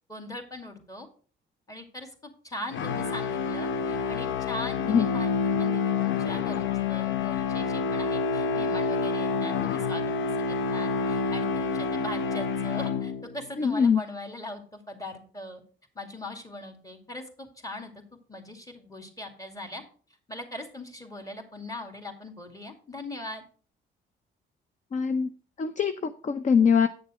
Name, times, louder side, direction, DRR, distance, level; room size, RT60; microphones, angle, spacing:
voice 1, 0.1-1.1 1.7-6.6 6.9-10.0 10.5-15.6 15.9-17.9 18.3-19.8 20.3-23.4, left 1 dB, 15° left, 5 dB, 2.3 m, -40 dB
sound 1, 2.7-13.5, left 5 dB, 75° left, 0.7 m, -28 dB
voice 2, 13.6-14.0 24.9-25.3 25.6-26.9, left 6 dB, 40° left, 11 dB, 0.6 m, -23 dB
9.2 x 6.6 x 4.9 m, 0.42 s
cardioid pair, 90°, 20 cm